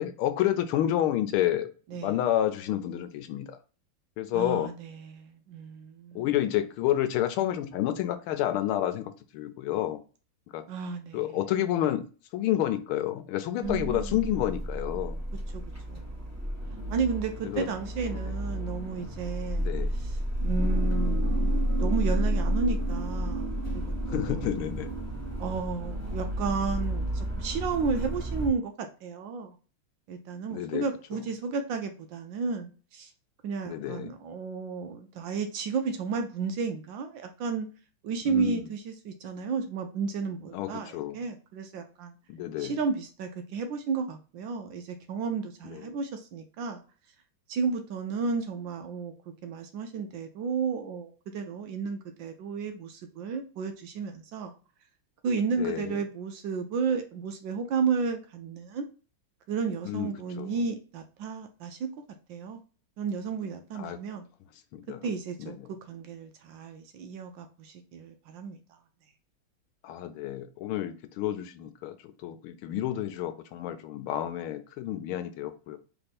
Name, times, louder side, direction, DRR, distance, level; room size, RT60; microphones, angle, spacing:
voice 1, 0.0-3.6 4.2-4.7 6.1-10.0 10.5-10.6 11.1-15.2 17.4-17.7 18.1-18.3 19.6-19.9 24.1-24.9 30.5-30.8 33.6-34.1 38.3-38.7 40.5-41.2 42.3-42.8 45.6-45.8 55.6-56.0 59.8-60.1 60.4-60.5 63.7-64.0 64.7-65.0 65.4-65.5 69.8-72.0 72.2-75.8, left 12 dB, 80° left, 10 dB, 1.5 m, -30 dB
voice 2, 4.3-6.3 10.7-11.4 13.6-14.2 15.5-15.6 15.9-16.2 16.9-23.8 24.1-24.4 25.4-29.6 30.1-33.1 33.4-37.7 38.0-42.2 42.6-46.8 47.5-49.1 49.4-54.5 55.2-58.9 59.5-61.9 62.3-62.6 63.0-64.3 65.0-68.6, right 5 dB, 70° right, 6 dB, 1.2 m, -33 dB
sound 1, 13.6-28.5, equal, 10° right, 0.8 m, -31 dB
sound 2, 20.6-25.6, right 4 dB, 40° right, 1.0 m, -37 dB
3.5 x 3.4 x 4.1 m, 0.36 s
omnidirectional pair, 2.3 m